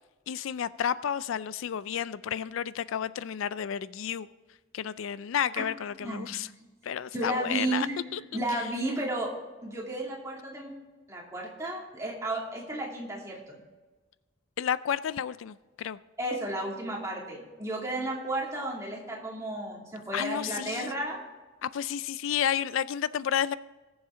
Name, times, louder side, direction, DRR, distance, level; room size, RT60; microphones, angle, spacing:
voice 1, 0.3-4.3 4.7-6.5 6.8-7.9 8.1-8.2 14.6-16.0 20.1-20.9 21.6-23.5, left 9 dB, 80° left, 17 dB, 0.4 m, -31 dB
voice 2, 6.0-6.3 7.1-9.3 9.6-10.7 11.1-13.6 16.2-21.2, right 1 dB, 15° right, -3 dB, 2.5 m, -33 dB
20.5 x 7.2 x 3.7 m, 1.2 s
head